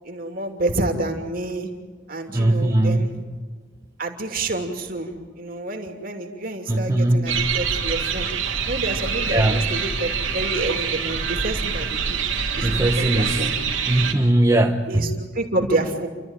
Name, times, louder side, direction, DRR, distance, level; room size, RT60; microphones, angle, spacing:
voice 1, 0.0-1.7 2.1-3.1 4.0-5.1 5.4-8.3 8.7-12.2 12.6-12.7 13.0-13.5 14.9-16.1, right 2 dB, 45° right, 4 dB, 2.9 m, -28 dB
voice 2, 2.3-3.1 6.7-7.3 9.3-9.6 12.6-13.5 13.8-15.1, right 1 dB, 15° right, 1 dB, 1.0 m, -20 dB
sound 1, 7.3-14.1, right 6 dB, 75° right, 2.8 m, -25 dB
29.5 x 13.5 x 9.1 m, 1.5 s
head